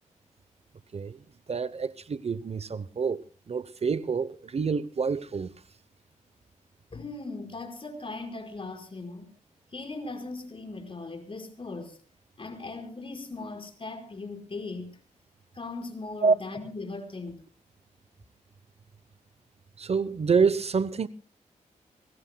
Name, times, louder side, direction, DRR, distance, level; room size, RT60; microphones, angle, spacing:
voice 1, 1.5-3.2 3.5-5.5 16.2-16.4 19.8-21.1, right 5 dB, 50° right, 0.8 m, -27 dB
voice 2, 6.9-9.3 9.7-12.0 12.4-15.0 15.5-17.4, left 3 dB, 40° left, 5.0 m, -38 dB
24.5 x 21.0 x 2.3 m
cardioid pair, 60°, 14 cm